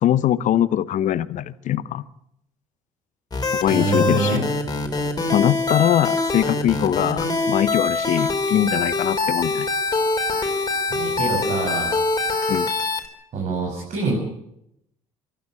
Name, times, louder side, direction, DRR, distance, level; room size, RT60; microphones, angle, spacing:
voice 1, 0.0-2.1 3.6-4.4 5.3-9.7 12.5-12.7, left 11 dB, 60° left, 1.0 m, -22 dB
sound 1, 3.3-13.1, left 3 dB, 25° left, 4.4 m, -24 dB
voice 2, 3.7-4.4 10.9-12.0 13.3-14.2, right 4 dB, 55° right, 6.7 m, -25 dB
24.5 x 12.5 x 8.6 m
hypercardioid pair, 55°, 15 cm